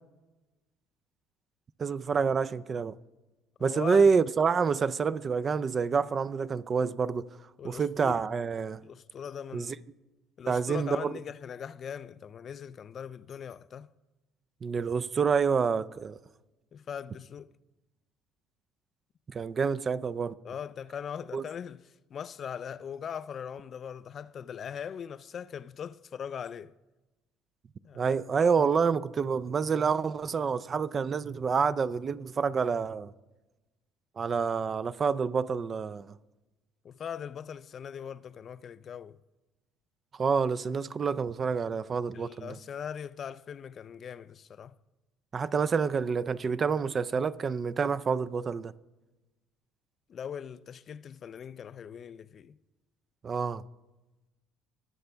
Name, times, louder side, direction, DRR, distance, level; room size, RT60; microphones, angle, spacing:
voice 1, 1.8-3.0 3.6-7.3 7.6-8.8 9.5-9.8 10.5-11.1 14.6-16.2 19.3-20.3 21.3-21.4 27.9-33.1 34.2-36.1 40.1-42.6 45.3-48.7 53.2-53.6, right 5 dB, 35° right, 0.4 m, -28 dB
voice 2, 3.6-4.1 7.6-8.2 8.8-9.8 10.4-13.9 16.7-17.5 20.4-21.8 22.1-26.7 27.8-28.1 36.8-39.2 42.1-44.8 50.1-52.6, left 8 dB, 45° left, 0.3 m, -40 dB
19.5 x 6.8 x 3.4 m
supercardioid pair, 100°, 0 cm